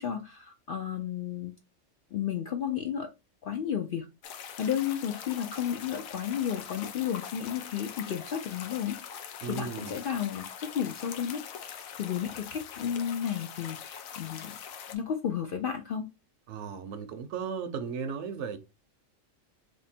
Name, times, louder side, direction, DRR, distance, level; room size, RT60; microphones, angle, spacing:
voice 1, 0.0-1.5 2.1-3.1 3.4-4.1 4.6-9.0 9.5-14.6 14.9-16.1, left 9 dB, 65° left, 0.5 m, -33 dB
sound 1, 4.2-15.0, left 8 dB, 85° left, 1.1 m, -43 dB
voice 2, 9.4-9.9 16.5-18.6, right 6 dB, 65° right, 0.9 m, -36 dB
3.5 x 2.6 x 4.1 m
omnidirectional pair, 1.4 m